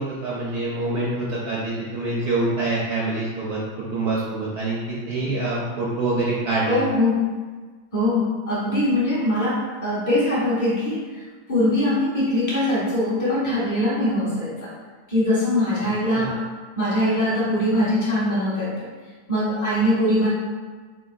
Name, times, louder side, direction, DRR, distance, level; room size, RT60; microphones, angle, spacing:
voice 1, 0.0-6.8 16.1-16.3, right 2 dB, 75° right, -6 dB, 0.9 m, -26 dB
voice 2, 6.7-7.2 7.9-11.1 11.5-14.7 15.1-16.4 16.8-18.9 19.3-20.3, left 1 dB, 25° left, -8 dB, 0.4 m, -22 dB
4.0 x 3.6 x 2.3 m, 1.4 s
omnidirectional pair, 2.3 m